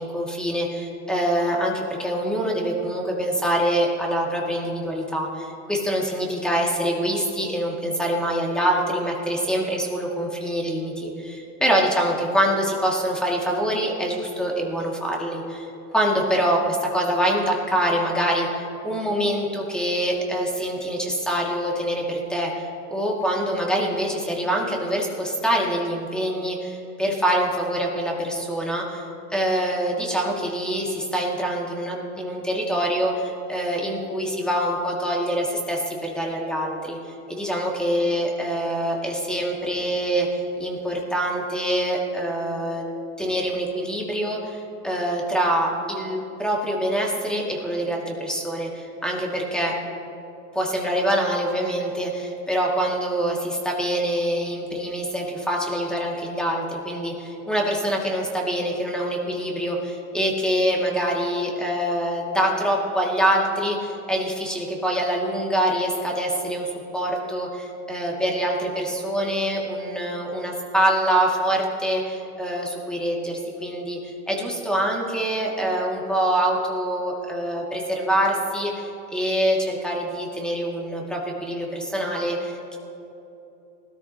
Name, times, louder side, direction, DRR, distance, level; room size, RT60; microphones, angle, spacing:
voice 1, 0.0-29.0 29.3-40.3 40.6-42.8 43.2-49.7 50.5-74.0 74.3-82.8, equal, ahead, -2 dB, 2.4 m, -25 dB
19.5 x 13.0 x 3.0 m, 2.9 s
supercardioid pair, 115°, 37 cm